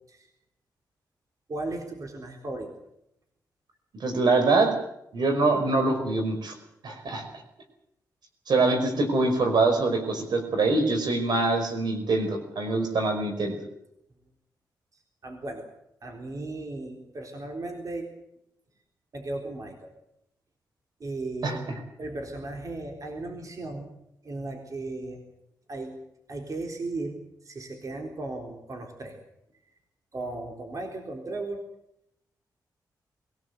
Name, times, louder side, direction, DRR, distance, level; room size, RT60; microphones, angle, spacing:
voice 1, 1.5-2.7 14.9-15.7 16.0-18.2 19.1-19.9 21.0-23.9 24.2-25.2 25.7-26.0 26.3-29.2 30.1-31.6, right 2 dB, 50° right, 2 dB, 4.0 m, -36 dB
voice 2, 4.0-4.7 5.1-6.5 6.8-7.2 8.5-13.6 21.4-21.6, right 3 dB, 70° right, 5 dB, 5.3 m, -24 dB
22.5 x 18.0 x 8.1 m, 0.78 s
cardioid pair, 80°, 7 cm